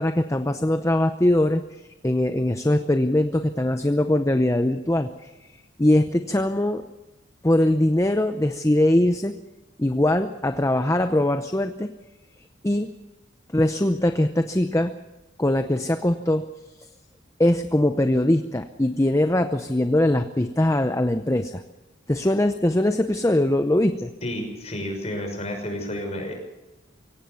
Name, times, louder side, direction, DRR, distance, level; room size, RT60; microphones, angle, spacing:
voice 1, 0.0-1.6 2.0-5.3 5.8-6.8 7.4-9.4 9.8-11.9 12.6-12.9 13.5-14.9 15.4-16.5 17.4-21.6 22.1-24.1, left 1 dB, 15° left, 8 dB, 0.7 m, -21 dB
voice 2, 24.2-26.3, left 1 dB, 30° left, 3 dB, 6.1 m, -31 dB
23.5 x 17.0 x 7.0 m, 1.1 s
head